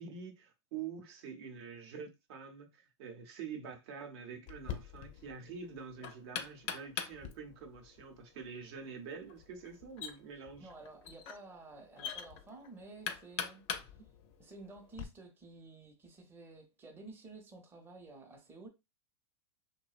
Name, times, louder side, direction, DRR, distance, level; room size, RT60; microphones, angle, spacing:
voice 1, 0.0-10.7, right 6 dB, 65° right, 0.7 m, -46 dB
Knock, 4.5-15.1, left 8 dB, 45° left, 0.5 m, -44 dB
voice 2, 10.6-13.6 14.4-18.7, right 3 dB, 15° right, 0.6 m, -52 dB
2.6 x 2.1 x 2.3 m
hypercardioid pair, 120°, 15 cm